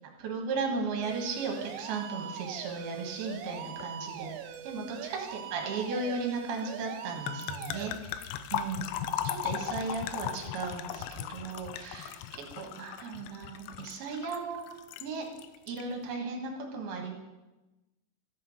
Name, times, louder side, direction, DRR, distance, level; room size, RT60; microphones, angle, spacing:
voice 1, 0.2-4.3 4.6-8.9 9.2-14.6 15.0-15.3 15.7-17.1, right 4 dB, 65° right, 1 dB, 3.0 m, -36 dB
sound 1, 1.0-7.9, right 9 dB, 90° right, 2.3 m, -42 dB
sound 2, 3.8-4.0 4.2-4.6 7.3-15.1 15.4-15.8, left 10 dB, 85° left, 2.9 m, -37 dB
13.5 x 5.7 x 6.5 m, 1.1 s
omnidirectional pair, 5.5 m